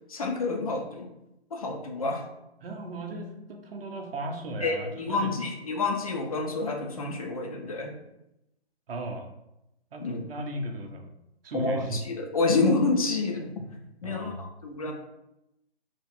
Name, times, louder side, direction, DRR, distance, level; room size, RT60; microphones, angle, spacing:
voice 1, 0.1-1.1 1.5-2.2 4.6-8.0 10.0-10.2 11.5-13.7 14.0-14.9, left 3 dB, 35° left, 2 dB, 0.4 m, -28 dB
voice 2, 2.6-5.3 8.9-9.3 9.9-11.1 11.4-12.0 14.0-14.4, right 1 dB, 60° right, 3 dB, 0.7 m, -36 dB
2.9 x 2.3 x 3.6 m, 0.89 s
figure-of-eight pair, 145°, 33 cm